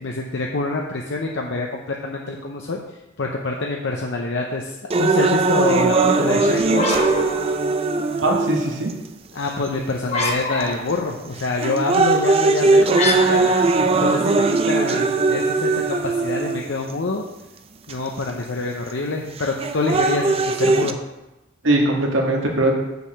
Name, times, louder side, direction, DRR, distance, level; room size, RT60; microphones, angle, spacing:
voice 1, 0.0-2.8 3.2-7.0 9.3-13.7 14.0-17.2 17.9-21.0, left 3 dB, 65° left, 0 dB, 0.7 m, -26 dB
sound 1, 4.9-8.9 9.7-9.8 10.6-10.9 11.4-16.9 17.9-18.0 19.4-20.9, right 3 dB, 30° right, 0.5 m, -19 dB
sound 2, 6.6-8.2 10.0-11.1 12.9-14.8, left 1 dB, 35° left, 1.0 m, -26 dB
voice 2, 8.2-8.9 21.6-22.7, right 1 dB, 75° right, 0 dB, 1.6 m, -20 dB
6.7 x 4.8 x 6.5 m, 0.98 s
head